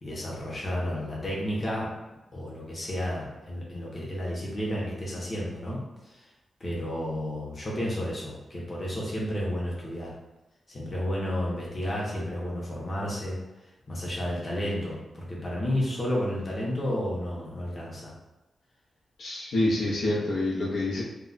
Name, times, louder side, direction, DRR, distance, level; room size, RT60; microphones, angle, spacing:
voice 1, 0.0-1.9 2.3-5.8 6.6-10.1 10.7-13.4 13.9-18.1, equal, 30° left, -5 dB, 0.7 m, -31 dB
voice 2, 19.2-21.0, left 1 dB, 85° left, -5 dB, 0.7 m, -27 dB
2.2 x 2.1 x 3.8 m, 1.1 s
wide cardioid pair, 150°, 0 cm